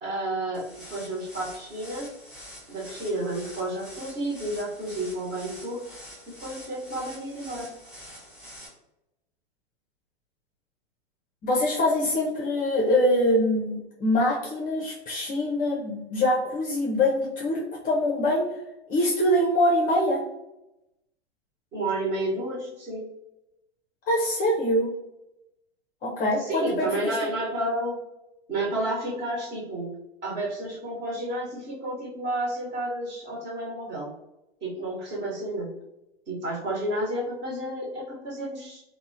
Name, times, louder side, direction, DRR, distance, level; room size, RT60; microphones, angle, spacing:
voice 1, 0.0-2.1 2.7-5.8 6.3-7.7 21.7-23.1 26.4-28.0 28.5-29.9 30.2-34.1 34.6-35.7 36.3-38.8, right 1 dB, 30° right, -3 dB, 1.1 m, -31 dB
sound 1, 0.5-8.7, equal, ahead, 0.9 m, -46 dB
voice 2, 11.4-18.5 18.9-20.2 24.1-24.9 26.0-26.8 27.1-27.2, left 1 dB, 25° left, -2 dB, 0.5 m, -24 dB
2.9 x 2.1 x 2.6 m, 0.90 s
hypercardioid pair, 115°, 34 cm